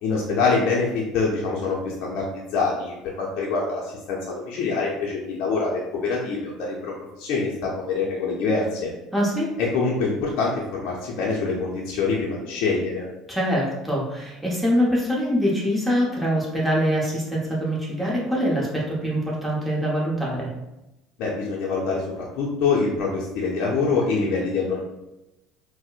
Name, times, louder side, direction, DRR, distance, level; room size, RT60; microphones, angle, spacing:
voice 1, 0.0-8.9 9.6-13.1 21.2-24.8, left 4 dB, 70° left, -4 dB, 0.5 m, -25 dB
voice 2, 9.1-9.5 13.3-20.5, equal, ahead, -5 dB, 1.0 m, -24 dB
4.1 x 2.0 x 2.4 m, 0.95 s
supercardioid pair, 90°, 0 cm